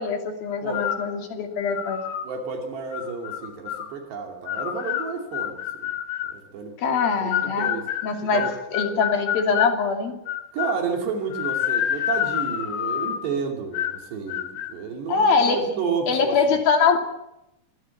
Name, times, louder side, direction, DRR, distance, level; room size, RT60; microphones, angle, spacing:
voice 1, 0.0-2.0 6.8-7.7 8.0-10.1 15.1-15.7 16.1-17.0, left 5 dB, 55° left, 4 dB, 4.2 m, -23 dB
sound 1, 0.7-1.1 1.7-2.3 2.9-3.9 4.5-6.4 7.0-9.8 10.3-10.8 11.3-13.3 13.7-14.0 14.3-14.7, left 11 dB, 85° left, 3.6 m, -28 dB
voice 2, 2.2-5.9 6.3-6.7 7.2-7.9 8.2-8.5 10.5-16.6, right 5 dB, 65° right, 3 dB, 4.9 m, -31 dB
26.0 x 16.5 x 8.4 m, 0.87 s
omnidirectional pair, 5.4 m